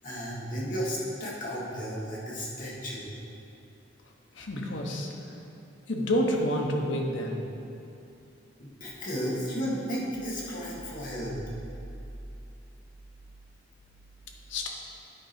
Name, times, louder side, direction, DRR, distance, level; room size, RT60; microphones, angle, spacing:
voice 1, 0.0-3.2 8.6-11.4, equal, 45° left, -6 dB, 1.7 m, -33 dB
voice 2, 4.3-5.1 5.9-7.4 14.5-14.7, equal, 75° left, 0 dB, 1.0 m, -28 dB
10.0 x 4.8 x 4.3 m, 2.7 s
head